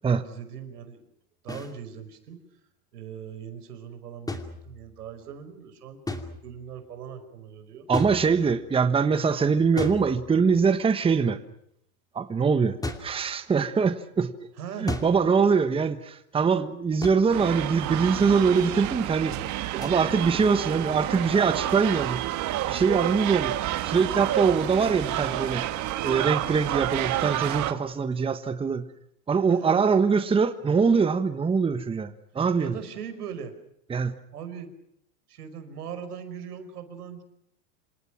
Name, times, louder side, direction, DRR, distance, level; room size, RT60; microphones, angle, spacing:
voice 1, 0.2-1.0 1.4-2.4 2.9-7.9 14.6-14.9 19.3-19.9 21.8-22.2 29.5-30.3 32.6-33.5 34.3-34.7 35.3-37.2, right 7 dB, 90° right, 5.3 m, -40 dB
sound 1, 1.5-1.8 4.3-5.1 6.1-6.7 7.9-8.7 9.8-10.6 12.8-13.2 14.9-15.4 17.0-17.4 19.8-20.0, left 2 dB, 10° left, 2.6 m, -35 dB
voice 2, 7.9-11.4 12.1-14.3 14.8-19.3 19.8-22.2 22.7-25.7 26.0-28.9 29.3-32.8 33.9-34.2, right 5 dB, 10° right, 1.3 m, -23 dB
sound 2, 17.3-27.7, right 14 dB, 40° right, 1.9 m, -29 dB
28.0 x 26.5 x 6.1 m
supercardioid pair, 130°, 45 cm